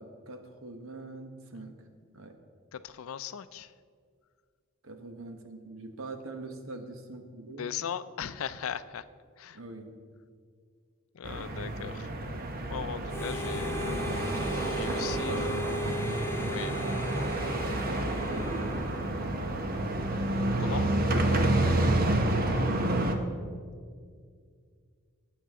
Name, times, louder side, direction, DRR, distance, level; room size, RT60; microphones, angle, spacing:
voice 1, 0.0-1.8 2.1-2.4 4.8-7.7 9.5-10.0 14.8-16.4 17.9-18.9, right 2 dB, 75° right, 6 dB, 1.2 m, -43 dB
voice 2, 2.7-3.7 7.6-9.0 9.4-9.6 11.1-12.1 12.7-13.7 14.4-15.4 16.4-16.8 20.6-20.9, left 8 dB, 75° left, 14 dB, 0.4 m, -38 dB
sound 1, 11.2-23.2, right 1 dB, 45° right, 0.9 m, -29 dB
Harmonica, 13.1-19.5, left 1 dB, 10° left, 0.7 m, -38 dB
18.5 x 7.8 x 3.7 m, 2.1 s
head